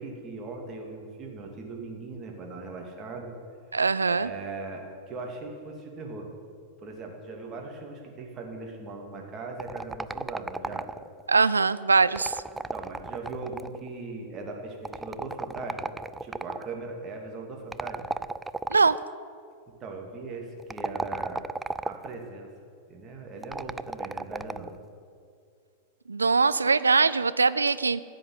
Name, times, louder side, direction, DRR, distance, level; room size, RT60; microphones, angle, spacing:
voice 1, 0.0-3.3 4.1-6.3 6.8-10.9 12.5-15.9 16.2-18.1 19.7-21.4 21.8-22.5 22.9-24.7, right 3 dB, 30° right, 1 dB, 2.7 m, -39 dB
voice 2, 3.7-4.3 11.3-12.4 18.7-19.0 26.1-28.0, right 4 dB, 75° right, 15 dB, 0.4 m, -22 dB
sound 1, 9.6-11.2 12.0-13.9 14.8-16.7 17.7-19.0 20.6-22.2 23.4-24.8, right 3 dB, 10° right, 0.4 m, -34 dB
15.5 x 7.8 x 9.3 m, 2.3 s
figure-of-eight pair, 90°, 0 cm